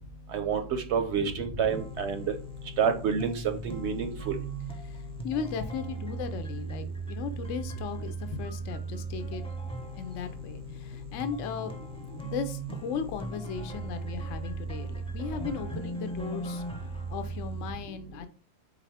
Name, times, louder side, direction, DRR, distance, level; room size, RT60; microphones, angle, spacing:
voice 1, 0.3-2.3 2.8-4.4, right 6 dB, 65° right, 6 dB, 0.7 m, -28 dB
voice 2, 1.2-1.6 4.9-9.4 10.0-11.7 12.2-16.6 17.1-18.3, left 6 dB, 70° left, 8 dB, 0.8 m, -37 dB
sound 1, 1.7-17.7, right 3 dB, 10° left, 0.3 m, -38 dB
4.1 x 3.7 x 3.3 m, 0.38 s
omnidirectional pair, 1.5 m